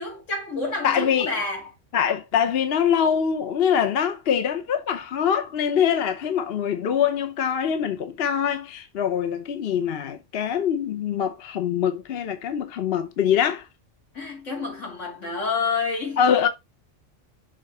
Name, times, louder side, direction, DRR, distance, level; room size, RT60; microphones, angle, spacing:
voice 1, 0.0-1.7 14.1-16.2, left 4 dB, 80° left, 2.5 m, -29 dB
voice 2, 0.8-1.3 1.9-13.7 16.2-16.5, left 8 dB, 60° left, 0.9 m, -23 dB
6.5 x 3.9 x 4.1 m
omnidirectional pair, 1.3 m